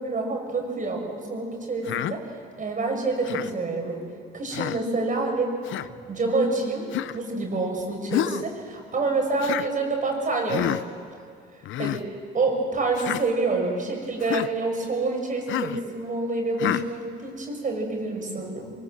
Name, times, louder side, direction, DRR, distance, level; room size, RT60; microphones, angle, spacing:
voice 1, 0.0-2.3 2.6-4.1 4.3-5.5 6.1-10.9 11.5-18.7, right 3 dB, 40° right, 1 dB, 6.0 m, -27 dB
Human voice, 1.8-2.1 3.2-3.5 4.5-4.8 5.6-5.9 6.9-7.2 8.1-8.5 9.4-9.7 10.5-10.8 11.6-12.0 13.0-13.2 14.2-14.5 15.5-15.8 16.6-16.9, left 12 dB, 80° left, 0.7 m, -28 dB
23.0 x 22.0 x 7.8 m, 2.2 s
cardioid pair, 90°, 20 cm